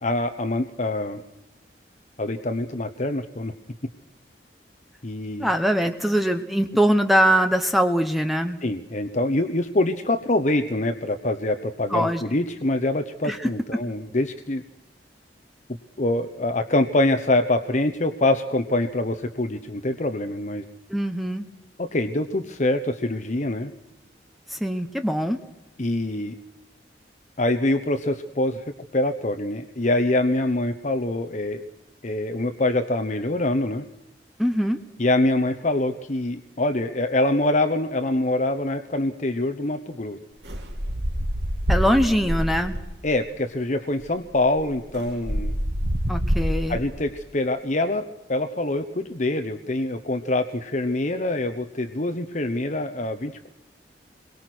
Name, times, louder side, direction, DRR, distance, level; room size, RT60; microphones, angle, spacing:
voice 1, 0.0-1.2 2.2-3.5 5.0-5.5 8.6-14.6 16.0-20.6 21.8-23.7 25.8-26.3 27.4-28.6 28.9-31.6 32.0-33.8 35.0-40.2 43.0-45.5 46.7-53.5, left 2 dB, 45° left, 7 dB, 1.1 m, -25 dB
voice 2, 5.4-8.6 11.9-12.2 13.2-13.8 20.9-21.5 24.5-25.4 34.4-34.8 41.7-42.8 46.1-46.8, equal, ahead, 6 dB, 1.1 m, -22 dB
sound 1, 40.4-43.0 44.0-44.1 44.4-47.0, equal, 80° right, 2.4 m, -26 dB
27.5 x 22.5 x 6.2 m, 0.93 s
head